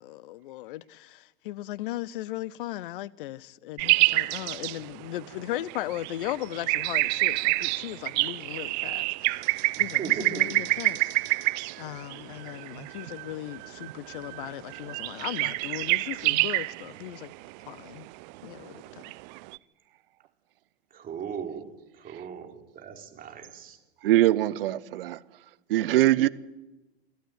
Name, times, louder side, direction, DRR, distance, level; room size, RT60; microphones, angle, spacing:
voice 1, 0.0-11.5 11.8-17.3 17.7-18.1 18.4-18.8, left 15 dB, 55° left, 0.9 m, -37 dB
sound 1, 3.8-19.6, right 25 dB, 45° right, 0.7 m, -28 dB
voice 2, 9.8-10.6 20.9-21.6 21.9-23.8, right 7 dB, 25° right, 4.1 m, -38 dB
voice 3, 24.0-25.2 25.7-26.3, right 15 dB, 60° right, 1.1 m, -23 dB
25.0 x 14.0 x 9.7 m
figure-of-eight pair, 95°, 32 cm